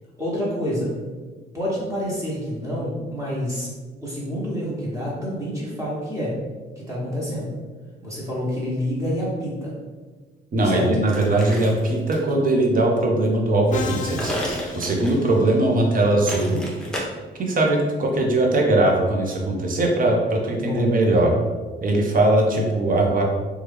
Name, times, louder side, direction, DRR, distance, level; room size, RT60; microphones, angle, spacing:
voice 1, 0.2-0.9 1.5-3.7 4.0-6.3 6.8-7.5 8.0-9.8 10.6-10.9 20.5-20.9, equal, 15° right, -7 dB, 1.2 m, -28 dB
voice 2, 10.5-14.3 14.7-16.6 17.3-21.3 21.8-23.2, right 2 dB, 45° right, 0 dB, 0.7 m, -20 dB
sound 1, 11.1-12.3 14.2-15.3 16.3-17.0, equal, 5° left, 0.8 m, -31 dB
Musical instrument, 13.7-15.8, left 4 dB, 40° left, 0.4 m, -33 dB
3.0 x 2.3 x 3.4 m, 1.3 s
cardioid pair, 90°, 20 cm